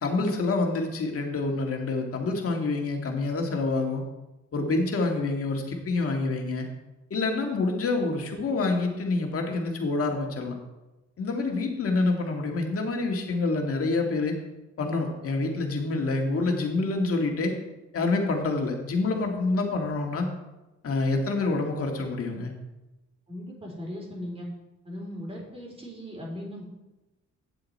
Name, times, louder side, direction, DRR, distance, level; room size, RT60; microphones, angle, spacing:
voice 1, 0.0-4.0 4.5-6.7 7.1-10.5 11.2-14.4 14.8-17.5 17.9-20.3 20.8-22.5, left 3 dB, 50° left, 2 dB, 2.0 m, -27 dB
voice 2, 23.3-24.5 24.8-26.6, equal, 20° right, -2 dB, 3.8 m, -38 dB
9.1 x 7.8 x 4.3 m, 1.0 s
cardioid pair, 90°, 30 cm